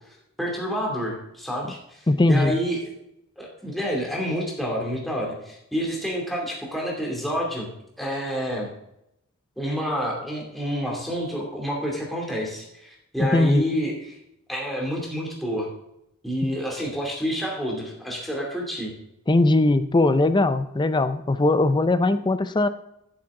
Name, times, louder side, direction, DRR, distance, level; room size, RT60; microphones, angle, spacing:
voice 1, 0.4-2.0 2.3-2.9 3.4-7.7 8.0-8.7 9.6-14.2 14.5-15.7 16.2-18.9, equal, ahead, -2 dB, 2.6 m, -28 dB
voice 2, 2.1-2.6 13.2-13.6 19.3-22.7, left 2 dB, 20° left, 12 dB, 0.5 m, -20 dB
13.5 x 7.8 x 3.7 m, 0.83 s
head